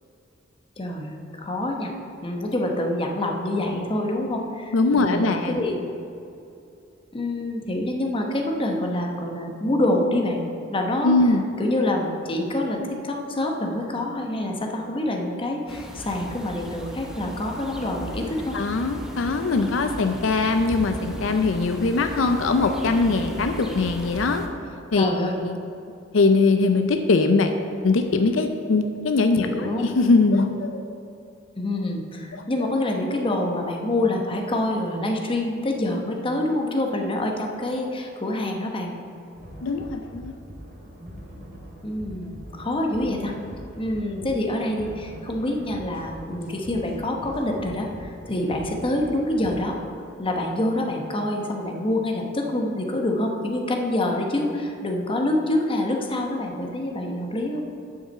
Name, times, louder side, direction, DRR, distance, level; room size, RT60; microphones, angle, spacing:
voice 1, 0.8-1.9 2.2-5.8 7.1-10.4 10.7-18.6 25.0-25.4 29.4-29.9 31.6-38.9 41.8-43.3 43.8-49.8 50.2-57.7, left 1 dB, 30° left, 2 dB, 0.9 m, -26 dB
voice 2, 4.7-5.6 11.0-11.4 18.5-24.4 24.9-25.1 25.4-25.6 26.1-27.5 27.8-30.8 32.3-32.7 39.6-40.3, left 3 dB, 75° left, 7 dB, 0.5 m, -21 dB
sound 1, 15.7-24.5, equal, 5° right, 0.8 m, -36 dB
sound 2, 39.3-49.7, equal, 50° right, 2.4 m, -42 dB
7.6 x 5.7 x 6.9 m, 2.6 s
head